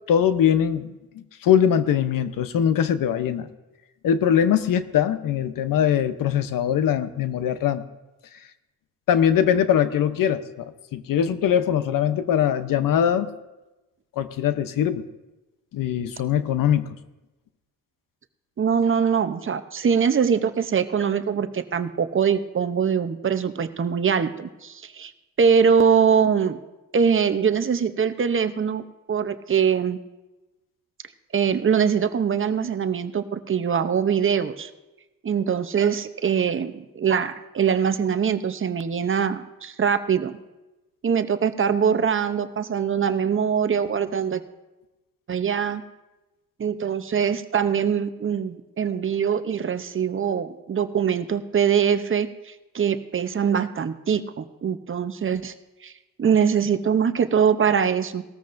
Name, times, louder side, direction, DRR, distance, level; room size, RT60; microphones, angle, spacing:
voice 1, 0.1-0.9 1.4-3.5 4.0-7.8 9.1-13.3 14.2-15.1 15.7-16.9, left 9 dB, 70° left, 12 dB, 0.8 m, -21 dB
voice 2, 18.6-25.1 25.4-26.6 26.9-30.0 31.3-34.7 35.2-40.4 41.0-44.4 45.3-45.8 46.6-55.5 55.8-55.9 56.2-58.2, right 7 dB, 35° right, 11 dB, 0.7 m, -23 dB
18.5 x 13.5 x 2.6 m, 1.1 s
cardioid pair, 80°, 35 cm